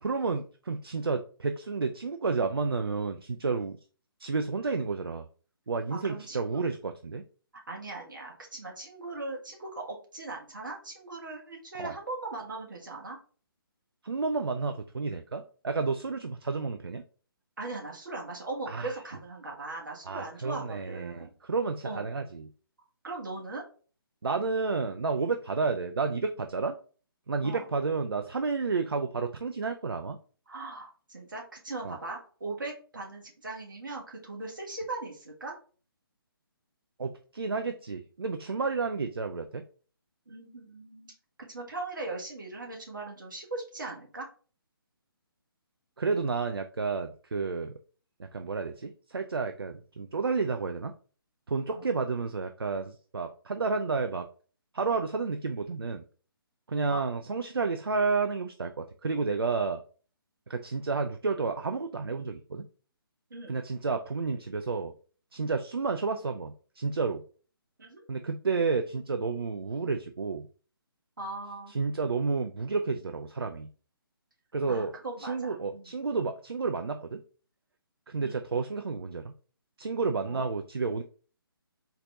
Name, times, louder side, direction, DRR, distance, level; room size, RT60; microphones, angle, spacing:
voice 1, 0.0-3.8 4.2-5.3 5.7-7.2 11.8-11.9 14.0-17.0 18.7-18.9 20.1-22.5 24.2-26.7 27.3-30.2 31.8-32.0 37.0-39.6 46.0-47.7 48.2-50.9 51.5-54.3 54.7-56.0 56.7-59.8 60.5-62.7 63.5-64.9 65.3-67.2 68.1-70.5 71.7-73.7 74.5-74.9 75.2-77.2 78.1-79.3 79.8-81.0, right 4 dB, 75° right, 6 dB, 0.4 m, -31 dB
voice 2, 5.9-6.6 7.7-13.2 17.6-21.3 21.8-22.0 23.0-23.6 27.4-27.7 30.5-35.5 40.3-41.1 41.5-44.3 51.7-51.8 56.9-57.0 63.3-63.5 67.8-68.1 71.2-71.7 74.7-75.9 78.2-78.4 80.3-80.4, right 2 dB, 55° right, 0 dB, 1.4 m, -39 dB
4.0 x 2.3 x 4.0 m, 0.40 s
figure-of-eight pair, 140°, 13 cm